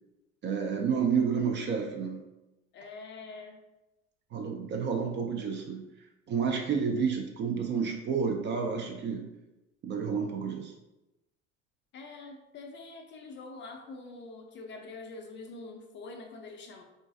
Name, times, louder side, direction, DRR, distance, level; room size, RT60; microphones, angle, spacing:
voice 1, 0.4-2.2 4.3-5.8 6.3-9.3 9.8-10.7, right 6 dB, 30° right, 2 dB, 0.4 m, -30 dB
voice 2, 2.7-3.6 11.9-16.8, left 3 dB, 30° left, 3 dB, 0.4 m, -45 dB
3.7 x 2.4 x 2.5 m, 0.99 s
figure-of-eight pair, 65°, 39 cm